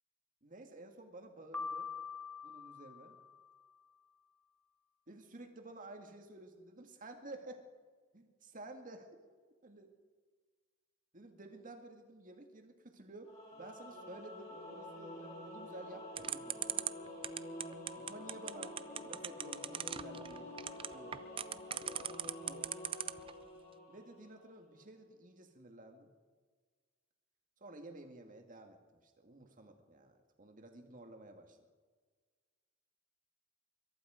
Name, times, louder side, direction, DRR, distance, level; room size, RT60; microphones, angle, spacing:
voice 1, 0.4-1.9 2.4-3.2 5.1-7.6 8.1-9.1 9.6-9.9 11.1-16.6 17.9-18.8 19.0-20.5 20.9-21.2 22.2-22.7 23.9-26.1 27.6-31.6, right 2 dB, 40° right, 5 dB, 1.9 m, -52 dB
Piano, 1.5-3.7, left 5 dB, 5° left, 1.1 m, -44 dB
Singing / Musical instrument, 13.2-24.5, left 1 dB, 35° left, 5.1 m, -48 dB
sound 1, 16.2-23.3, right 9 dB, 25° right, 0.4 m, -38 dB
22.5 x 12.0 x 5.0 m, 1.5 s
head